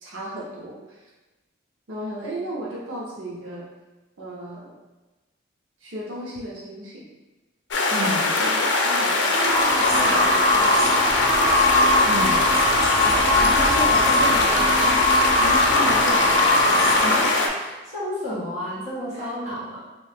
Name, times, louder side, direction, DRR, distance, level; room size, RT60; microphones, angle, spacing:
voice 1, 0.0-1.0 1.9-3.7 4.2-4.7 5.8-7.0 8.0-10.9 13.0-15.0 15.3-17.0 19.1-19.3, right 1 dB, 90° right, -5 dB, 0.7 m, -34 dB
sound 1, 7.7-17.5, left 2 dB, 65° left, 0.5 m, -22 dB
voice 2, 7.9-8.3 12.0-12.4 17.0-19.8, equal, 35° right, -9 dB, 1.3 m, -31 dB
sound 2, 9.4-17.4, left 1 dB, 5° left, 1.1 m, -21 dB
3.0 x 2.7 x 3.4 m, 1.1 s
head